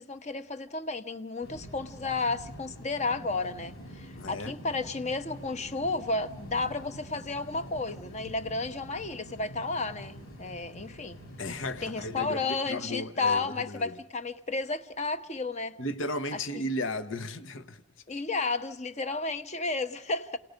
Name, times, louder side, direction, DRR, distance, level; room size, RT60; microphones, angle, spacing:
voice 1, 0.0-11.2 11.8-15.8 18.1-20.4, left 3 dB, 35° left, 1.0 m, -32 dB
sound 1, 1.4-12.4, equal, 85° left, 3.2 m, -46 dB
voice 2, 4.2-4.5 11.4-14.0 15.8-17.8 18.1-18.2, left 1 dB, 70° left, 1.1 m, -35 dB
29.5 x 18.0 x 5.2 m
head